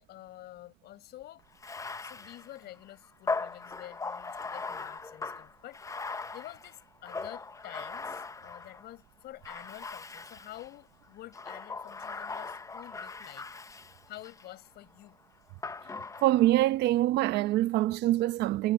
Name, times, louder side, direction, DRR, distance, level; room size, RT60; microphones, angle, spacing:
voice 1, 0.0-1.4 2.0-13.5 13.8-15.2, left 15 dB, 75° left, 6.6 m, -49 dB
Bathtub (filling or washing), 1.5-8.9 9.4-10.7 11.3-14.5 15.6-16.6, left 4 dB, 20° left, 0.8 m, -39 dB
voice 2, 16.2-18.7, right 15 dB, 80° right, 0.8 m, -25 dB
cardioid pair, 110°, 17 cm